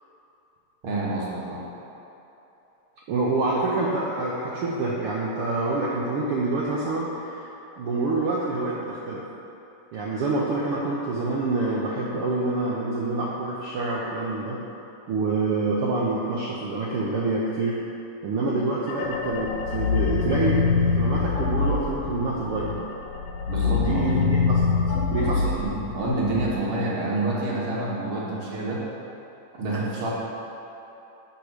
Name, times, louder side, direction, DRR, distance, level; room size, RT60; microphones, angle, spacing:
voice 1, 0.8-1.6 23.5-24.0 25.2-28.8 29.6-30.1, right 2 dB, 55° right, -5 dB, 1.8 m, -28 dB
voice 2, 3.1-7.5 7.8-9.2 9.9-14.6 15.1-17.8 18.2-22.7 23.7-24.7 25.1-25.6, right 3 dB, 85° right, -5 dB, 1.2 m, -27 dB
sound 1, 18.9-22.8 23.1-26.5, left 5 dB, 85° left, 2.0 m, -25 dB
6.7 x 4.9 x 5.9 m, 3.0 s
omnidirectional pair, 3.4 m